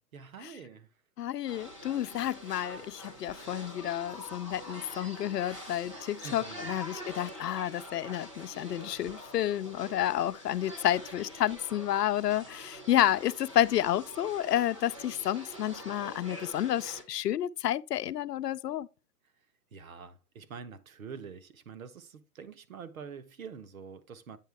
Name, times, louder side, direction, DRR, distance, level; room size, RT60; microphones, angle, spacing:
voice 1, 0.1-0.9 6.2-6.8 19.7-24.4, right 6 dB, 60° right, 1.0 m, -46 dB
voice 2, 1.2-18.9, left 12 dB, 90° left, 0.7 m, -30 dB
sound 1, 1.5-17.0, equal, 20° right, 0.7 m, -45 dB
9.1 x 4.3 x 3.4 m
hypercardioid pair, 180°, 47 cm